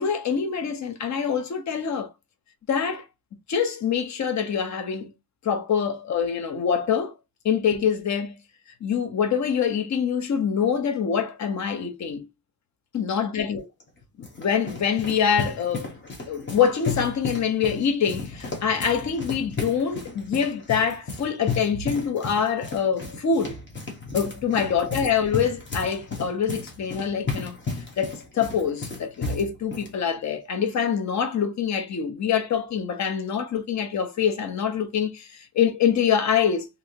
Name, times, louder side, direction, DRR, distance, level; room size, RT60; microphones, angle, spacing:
voice 1, 0.0-2.1 2.7-3.0 3.5-5.1 5.4-7.1 7.4-8.4 8.8-12.3 12.9-13.7 14.2-15.9 16.3-23.6 24.1-27.5 28.0-36.7, left 7 dB, 50° left, 0.8 m, -25 dB
sound 1, 13.8-29.9, left 4 dB, 30° left, 1.1 m, -34 dB
3.2 x 2.7 x 2.7 m
cardioid pair, 130°, 37 cm